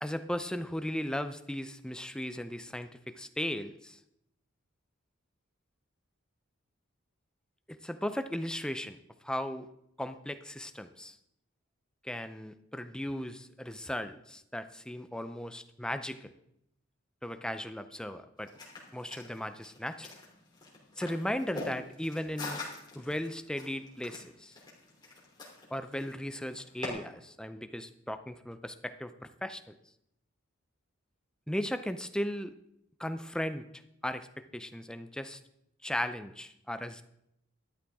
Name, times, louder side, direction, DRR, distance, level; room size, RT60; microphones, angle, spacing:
voice 1, 0.0-4.0 7.7-9.0 9.2-9.7 10.0-11.2 12.0-16.3 17.2-18.5 18.9-20.1 21.0-22.6 22.9-24.6 25.7-29.7 31.5-32.5 33.0-33.7 34.0-35.4 35.8-37.0, left 1 dB, 5° left, 10 dB, 0.5 m, -36 dB
sound 1, 18.4-26.9, left 2 dB, 20° left, 3.1 m, -44 dB
12.5 x 12.0 x 3.6 m, 0.78 s
head